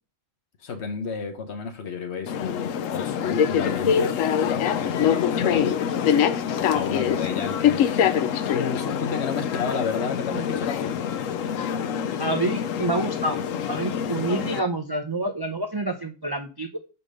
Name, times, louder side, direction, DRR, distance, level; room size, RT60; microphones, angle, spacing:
voice 1, 0.6-4.2 4.5-5.8 6.4-11.0, left 6 dB, 60° left, 1.3 m, -31 dB
sound 1, 2.3-14.6, left 8 dB, 85° left, 1.0 m, -25 dB
voice 2, 12.2-13.4 13.7-16.8, right 2 dB, 35° right, 0.3 m, -28 dB
5.0 x 4.2 x 5.1 m
omnidirectional pair, 1.4 m